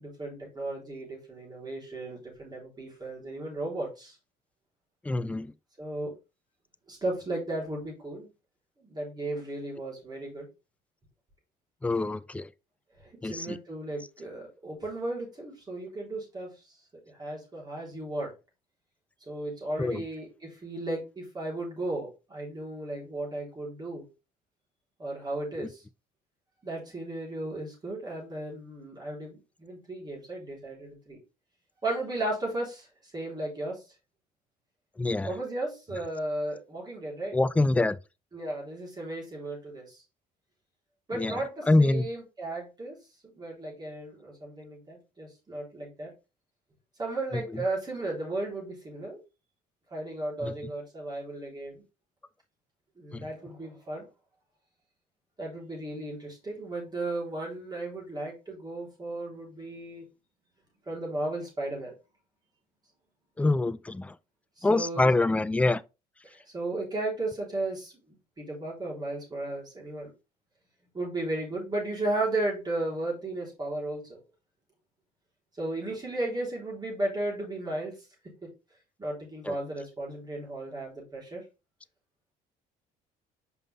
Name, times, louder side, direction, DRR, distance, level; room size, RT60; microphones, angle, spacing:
voice 1, 0.0-4.2 5.8-6.1 6.9-8.3 8.8-10.5 13.2-16.8 17.2-18.3 19.3-24.0 25.0-25.8 26.6-31.2 31.8-33.8 35.2-37.4 38.3-40.0 41.1-43.0 43.2-46.1 47.0-49.2 49.9-51.8 53.0-54.1 55.4-60.1 60.9-61.9 64.6-65.1 66.5-67.9 68.4-70.1 70.9-74.2 75.6-78.0 79.0-81.4, right 2 dB, 25° right, 3.7 m, -35 dB
voice 2, 5.0-5.5 11.8-12.5 13.2-13.6 19.8-20.0 25.6-25.7 35.0-35.3 37.3-38.0 41.1-41.4 41.7-42.1 47.5-47.6 50.4-50.5 53.1-53.3 63.4-64.2 64.6-65.8 79.5-79.6, left 2 dB, 10° left, 0.3 m, -25 dB
5.5 x 5.4 x 3.4 m
cardioid pair, 110°, 17 cm